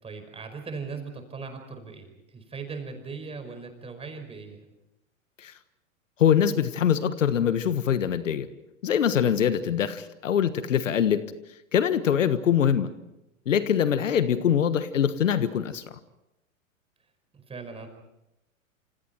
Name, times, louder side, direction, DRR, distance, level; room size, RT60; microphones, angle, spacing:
voice 1, 0.0-4.7 9.6-9.9 12.8-13.0 17.3-17.9, right 4 dB, 15° right, 6 dB, 5.3 m, -39 dB
voice 2, 6.2-8.5 8.8-11.2 11.7-12.9 13.5-15.8, left 8 dB, 70° left, 13 dB, 1.4 m, -23 dB
28.5 x 28.0 x 4.5 m, 0.89 s
figure-of-eight pair, 105°, 40 cm